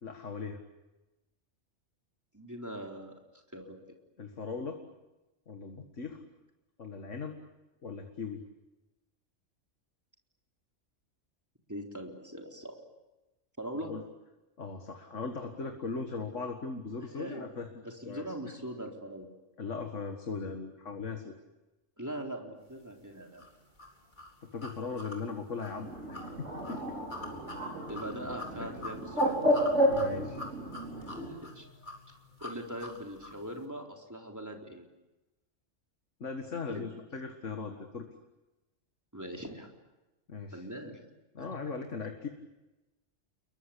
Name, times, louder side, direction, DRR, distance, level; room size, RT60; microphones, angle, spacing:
voice 1, 0.0-0.6 4.2-4.8 5.5-6.2 6.8-7.4 7.8-8.4 13.8-14.0 14.6-17.7 18.1-18.5 19.6-21.3 24.4-27.0 28.6-28.7 29.9-30.4 36.2-38.1 40.3-40.6 41.3-42.3, left 4 dB, 75° left, 4 dB, 2.2 m, -39 dB
voice 2, 2.3-3.1 3.5-3.8 11.7-12.8 13.6-13.9 17.1-17.5 17.8-19.3 22.0-23.4 27.9-29.3 31.0-31.7 32.4-34.9 36.7-36.9 39.1-39.7 40.5-41.0, right 1 dB, 15° right, 1 dB, 3.9 m, -41 dB
sound 1, 23.4-33.5, left 2 dB, 40° left, 4.2 m, -46 dB
Bird, 25.8-31.3, equal, 70° right, 5.7 m, -31 dB
29.5 x 22.5 x 8.5 m, 1.0 s
omnidirectional pair, 1.3 m